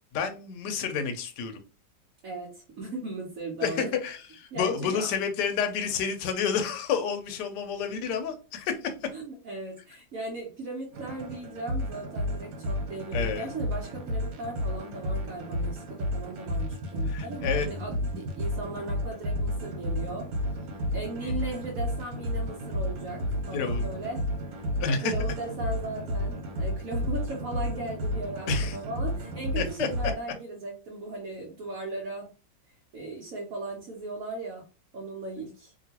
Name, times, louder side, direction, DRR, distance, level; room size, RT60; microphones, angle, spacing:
voice 1, 0.1-1.6 3.6-9.1 13.1-13.5 17.1-17.7 21.2-21.3 23.5-23.9 24.8-25.1 28.5-28.8 29.6-29.9, left 6 dB, 70° left, 7 dB, 1.2 m, -30 dB
voice 2, 2.2-3.9 4.5-5.1 9.1-24.3 24.5-32.3 32.9-34.7 34.9-35.7, right 2 dB, 55° right, -2 dB, 1.0 m, -37 dB
sound 1, 10.9-30.1, equal, 85° right, 1.6 m, -32 dB
2.9 x 2.8 x 2.8 m, 0.33 s
omnidirectional pair, 2.0 m